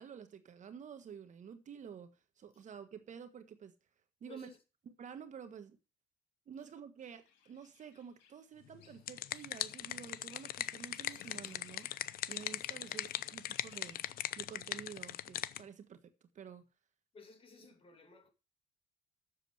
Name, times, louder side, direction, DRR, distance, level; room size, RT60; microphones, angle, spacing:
voice 1, 0.0-3.7 4.2-4.5 4.8-5.8 6.5-12.0 12.3-14.0 14.4-16.6, right 7 dB, 45° right, 1.5 m, -50 dB
voice 2, 4.3-4.6 6.6-6.7 12.8-13.1 17.1-18.3, left 4 dB, 35° left, 2.6 m, -57 dB
sound 1, 7.0-14.3, left 8 dB, 90° left, 2.5 m, -62 dB
sound 2, 8.7-15.6, left 12 dB, 60° left, 0.6 m, -40 dB
7.7 x 7.1 x 7.8 m
cardioid pair, 110°, 17 cm